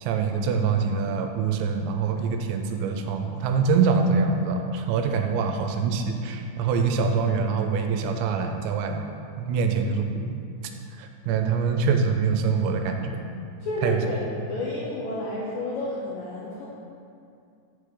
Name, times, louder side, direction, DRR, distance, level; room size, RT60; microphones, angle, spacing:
voice 1, 0.0-9.1 9.4-10.4 11.0-13.3 13.8-14.0, right 5 dB, 85° right, 5 dB, 2.8 m, -24 dB
voice 2, 13.6-16.7, left 1 dB, 85° left, -5 dB, 1.9 m, -31 dB
7.1 x 6.6 x 3.8 m, 2.4 s
omnidirectional pair, 5.1 m